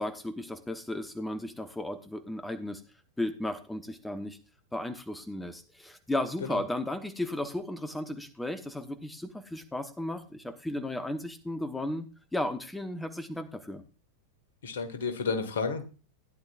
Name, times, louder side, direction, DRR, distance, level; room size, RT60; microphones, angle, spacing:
voice 1, 0.0-2.8 3.2-4.4 4.7-13.8, left 1 dB, 5° left, 9 dB, 0.9 m, -35 dB
voice 2, 14.6-15.8, left 5 dB, 60° left, 7 dB, 1.7 m, -31 dB
17.0 x 10.0 x 2.5 m, 0.34 s
figure-of-eight pair, 90°, 0 cm